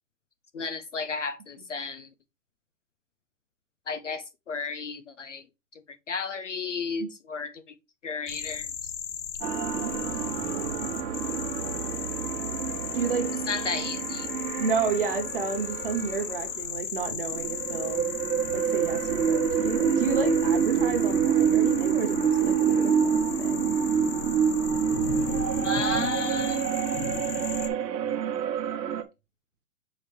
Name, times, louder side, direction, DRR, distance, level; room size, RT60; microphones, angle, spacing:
voice 1, 0.5-2.1 3.9-5.4 5.9-7.8 8.0-8.9 13.5-14.3 25.6-26.8, left 5 dB, 50° left, 0.4 m, -33 dB
sound 1, 8.3-27.7, left 7 dB, 80° left, 1.2 m, -36 dB
sound 2, 9.4-16.5 17.3-29.0, right 7 dB, 75° right, 1.1 m, -27 dB
voice 2, 9.7-10.1 10.4-10.9 12.3-12.4 12.9-13.3 14.5-18.0 18.5-23.6, right 5 dB, 30° right, 0.9 m, -31 dB
7.0 x 5.0 x 3.2 m
hypercardioid pair, 175°, 50 cm